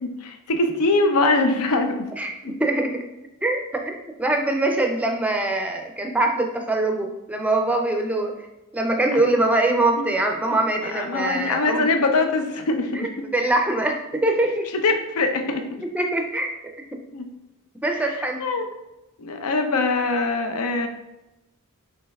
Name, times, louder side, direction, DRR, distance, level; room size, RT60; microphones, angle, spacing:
voice 1, 0.0-2.1 2.4-2.6 10.0-10.1 10.9-13.0 14.8-15.6 17.1-17.3 17.9-18.0 18.4-18.7 19.2-20.9, left 3 dB, 75° left, 5 dB, 0.6 m, -22 dB
voice 2, 2.2-3.0 3.4-8.3 8.7-11.9 12.9-14.7 15.9-16.5 16.9-17.0 17.8-18.4, right 2 dB, 5° right, 3 dB, 0.5 m, -23 dB
5.4 x 3.9 x 2.3 m, 0.94 s
head